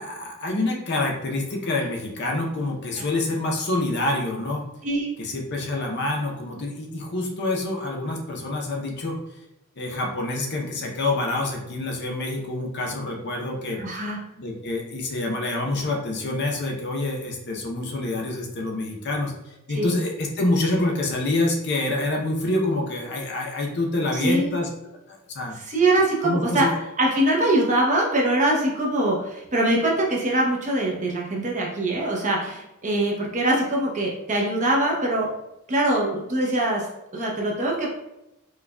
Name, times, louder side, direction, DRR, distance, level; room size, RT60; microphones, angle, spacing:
voice 1, 0.0-4.6 5.2-9.2 9.8-13.8 14.4-19.3 19.7-24.7 25.1-25.5 26.2-26.7, left 2 dB, 55° left, 0 dB, 0.6 m, -27 dB
voice 2, 13.8-14.2 19.7-19.9 24.2-24.6 25.6-26.7 27.0-35.3 35.7-36.8 37.1-37.9, right 1 dB, 35° right, -2 dB, 0.7 m, -23 dB
4.6 x 2.3 x 2.2 m, 0.89 s
head